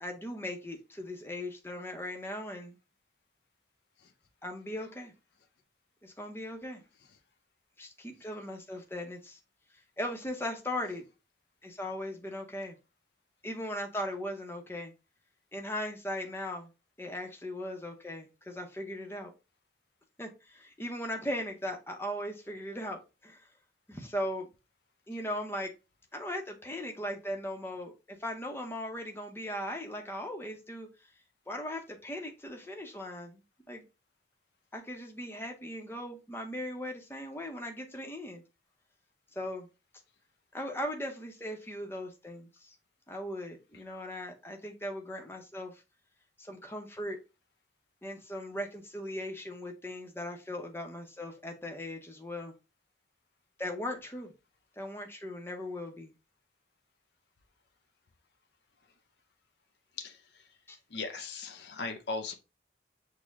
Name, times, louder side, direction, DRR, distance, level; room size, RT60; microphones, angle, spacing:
voice 1, 0.0-2.8 4.4-5.1 6.0-6.8 7.8-9.4 10.0-11.1 11.6-12.7 13.4-14.9 15.5-16.7 17.0-19.3 20.2-23.5 23.9-24.5 25.1-25.7 26.1-30.9 31.5-33.4 33.7-33.8 34.7-38.4 39.4-39.7 40.5-42.7 43.1-45.8 46.4-47.2 48.0-52.5 53.6-54.3 54.8-56.1 60.7-60.8, left 1 dB, 10° left, 0.7 m, -38 dB
voice 2, 60.9-62.3, left 4 dB, 65° left, 0.6 m, -37 dB
6.3 x 2.1 x 3.5 m
head